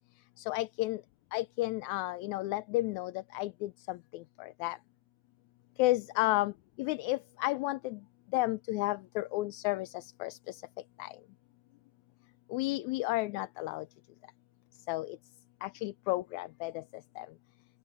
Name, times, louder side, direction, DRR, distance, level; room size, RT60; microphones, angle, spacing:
voice 1, 0.4-1.0 1.3-4.8 5.8-6.5 6.8-8.0 8.3-10.6 11.0-11.2 12.5-13.9 14.9-15.2 15.6-16.8 17.2-17.3, left 19 dB, 85° left, 1.9 m, -32 dB
open air
omnidirectional pair, 3.4 m